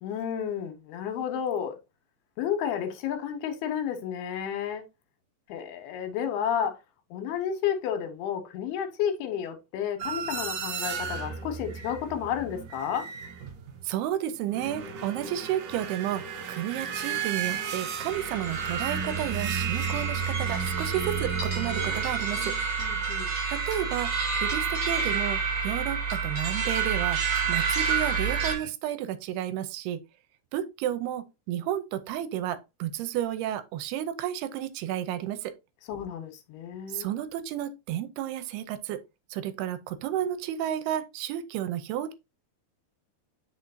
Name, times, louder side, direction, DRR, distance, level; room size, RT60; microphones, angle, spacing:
voice 1, 0.0-1.8 2.4-4.8 5.5-6.7 7.1-13.1 22.8-23.3 35.9-37.1 40.2-40.4, left 8 dB, 80° left, 3.1 m, -31 dB
sound 1, 10.0-13.9 14.3-23.0 25.0-25.3 27.4-27.5 27.8-28.7, right 7 dB, 65° right, 2.3 m, -34 dB
voice 2, 13.8-16.2 16.5-22.5 23.5-27.2 27.5-30.0 30.5-35.5 36.9-39.0 39.3-42.1, right 11 dB, 85° right, 2.7 m, -32 dB
sound 2, 18.1-28.6, right 5 dB, 50° right, 3.7 m, -29 dB
8.3 x 5.1 x 2.6 m
omnidirectional pair, 4.6 m